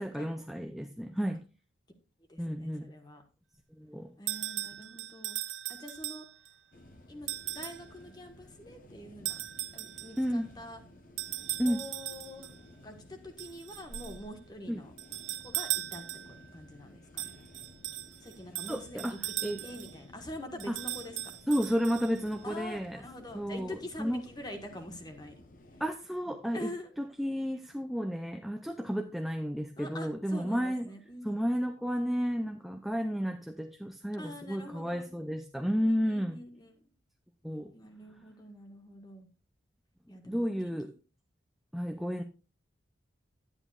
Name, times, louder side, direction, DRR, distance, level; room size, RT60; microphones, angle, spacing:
voice 1, 0.0-1.4 2.4-2.9 3.8-4.1 10.2-10.5 11.6-11.9 14.7-14.8 18.7-19.6 20.7-20.8 21.5-23.0 23.3-24.2 25.8-26.7 27.0-30.9 31.2-36.4 37.4-37.7 40.3-40.9 41.7-42.2, equal, ahead, 0.4 m, -32 dB
voice 2, 2.3-3.2 4.2-5.4 5.7-6.3 7.1-9.4 9.7-10.8 11.6-12.5 12.8-14.9 15.4-16.1 16.5-17.3 18.2-21.3 22.4-25.3 26.5-26.9 29.8-31.3 34.2-35.1 35.8-36.7 37.7-39.3 40.1-40.5, left 1 dB, 20° left, 1.3 m, -45 dB
sound 1, 4.3-6.5 7.3-7.9 9.3-10.3 11.2-12.6 13.4-14.2 15.0-16.4 17.2-20.0 20.6-22.4, right 15 dB, 85° right, 0.6 m, -38 dB
sound 2, 6.7-25.9, left 1 dB, 45° left, 1.0 m, -54 dB
11.0 x 10.0 x 2.4 m
head